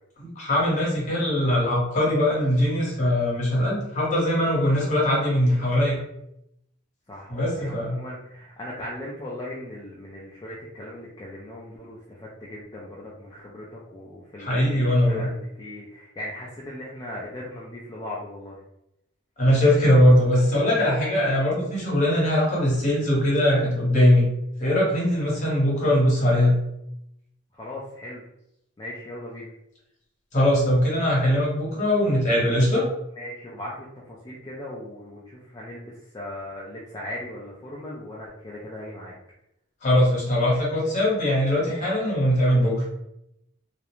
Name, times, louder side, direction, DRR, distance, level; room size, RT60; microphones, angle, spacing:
voice 1, 0.2-6.0 7.3-8.0 14.4-15.3 19.4-24.2 24.6-26.6 30.3-32.8 39.8-42.9, left 1 dB, 35° left, -5 dB, 0.9 m, -21 dB
voice 2, 7.1-18.6 27.5-28.2 28.8-29.5 33.2-39.1, left 1 dB, 20° left, -6 dB, 0.3 m, -38 dB
2.4 x 2.0 x 3.0 m, 0.81 s
head